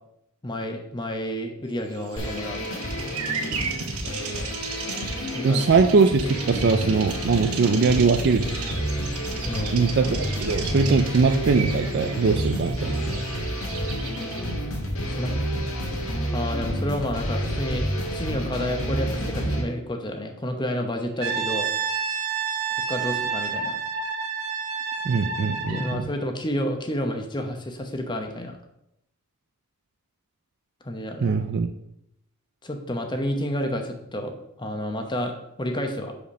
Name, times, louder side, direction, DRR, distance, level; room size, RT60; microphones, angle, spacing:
voice 1, 0.4-2.9 5.2-5.6 9.4-9.8 15.0-15.3 16.3-21.7 21.9-22.0 22.9-23.8 25.7-28.6 30.8-31.4 32.6-36.1, equal, 20° left, 4 dB, 0.8 m, -30 dB
Bird vocalization bird call bird song, 1.9-14.6, right 6 dB, 85° right, 1.0 m, -36 dB
sound 1, 2.2-19.6, equal, 70° left, 1.8 m, -29 dB
voice 2, 5.4-8.4 9.7-13.0 25.0-26.1 31.2-31.7, right 4 dB, 50° right, 7 dB, 0.4 m, -21 dB
Brass instrument, 21.2-26.0, right 6 dB, 65° right, 1.0 m, -29 dB
5.1 x 5.0 x 6.2 m, 0.81 s
head